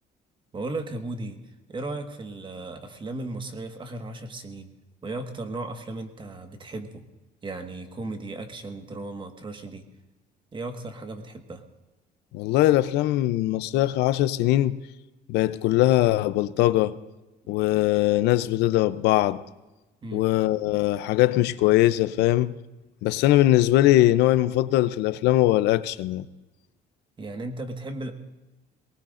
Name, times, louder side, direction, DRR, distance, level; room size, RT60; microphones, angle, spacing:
voice 1, 0.5-1.4 1.7-4.7 5.0-7.1 7.4-9.9 10.5-11.6 20.0-20.3 27.2-28.1, right 2 dB, 30° right, 1.6 m, -35 dB
voice 2, 12.3-14.8 15.3-16.9 17.5-19.4 20.1-22.6 23.0-26.2, left 15 dB, 90° left, 0.6 m, -21 dB
22.5 x 19.0 x 2.6 m
cardioid pair, 110°, 17 cm